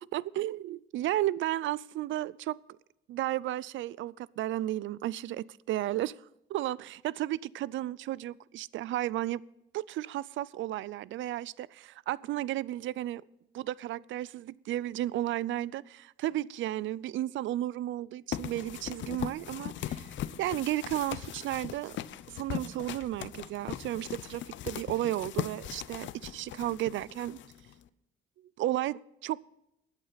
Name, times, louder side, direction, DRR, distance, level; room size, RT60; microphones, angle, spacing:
voice 1, 0.0-2.6 3.1-6.2 6.5-9.4 9.7-13.2 13.5-20.1 20.4-22.0 22.3-27.4 28.6-29.4, right 14 dB, 75° right, 0.4 m, -33 dB
sound 1, 18.3-27.8, left 11 dB, 70° left, 0.6 m, -39 dB
21.5 x 8.2 x 4.0 m
cardioid pair, 90°, 20 cm